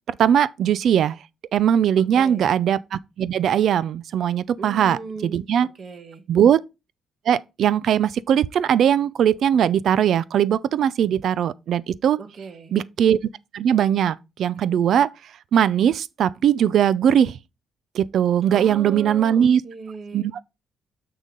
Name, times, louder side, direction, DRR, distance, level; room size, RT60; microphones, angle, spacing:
voice 1, 0.2-1.2 1.5-5.7 6.3-6.6 7.3-12.2 12.7-13.2 13.5-15.1 15.5-17.4 17.9-19.6 20.1-20.4, right 9 dB, 65° right, 0.4 m, -20 dB
voice 2, 2.0-2.5 4.6-5.5 5.8-6.2 12.2-12.7 18.5-20.3, right 4 dB, 45° right, 1.3 m, -37 dB
6.8 x 6.3 x 3.8 m
cardioid pair, 90°, 0 cm